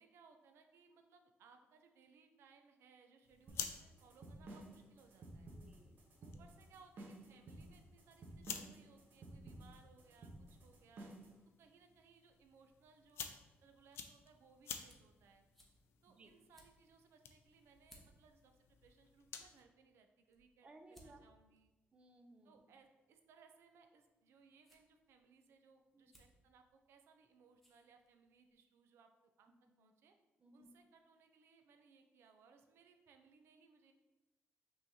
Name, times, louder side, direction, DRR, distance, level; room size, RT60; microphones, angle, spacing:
voice 1, 0.0-5.5 6.2-11.1 11.6-15.4 16.0-21.7 22.4-29.1 29.4-29.5 29.8-30.1 30.5-33.9, right 5 dB, 90° right, 6 dB, 0.5 m, -66 dB
sound 1, 3.2-19.6, left 7 dB, 85° left, 0.4 m, -53 dB
sound 2, 3.5-11.4, right 2 dB, 55° right, 0.9 m, -53 dB
voice 2, 5.5-6.0 16.1-16.3 20.6-21.2 21.9-22.6 25.9-26.1 30.4-30.7, right 2 dB, 30° right, 5 dB, 0.4 m, -61 dB
sound 3, 14.6-28.5, equal, 5° left, 0.7 m, -71 dB
5.4 x 3.1 x 2.7 m, 1.1 s
cardioid pair, 150°, 4 cm